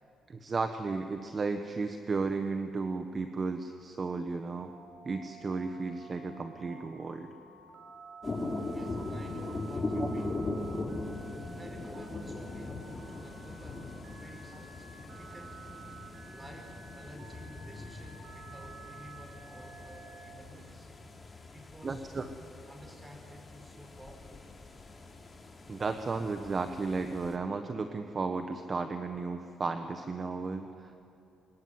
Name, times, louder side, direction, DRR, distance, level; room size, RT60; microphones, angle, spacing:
voice 1, 0.3-4.7 5.0-7.3 10.0-10.1 21.8-22.3 25.7-31.0, right 4 dB, 35° right, 7 dB, 1.3 m, -34 dB
Telephone, 4.6-20.3, right 4 dB, 75° right, 4.4 m, -52 dB
sound 1, 8.2-27.4, left 2 dB, 30° left, 3.4 m, -40 dB
voice 2, 8.6-10.4 11.5-15.6 16.2-21.0 21.5-22.4 22.7-24.5, equal, 15° right, 4 dB, 5.2 m, -51 dB
24.0 x 21.0 x 9.6 m, 2.8 s
cardioid pair, 90°, 0 cm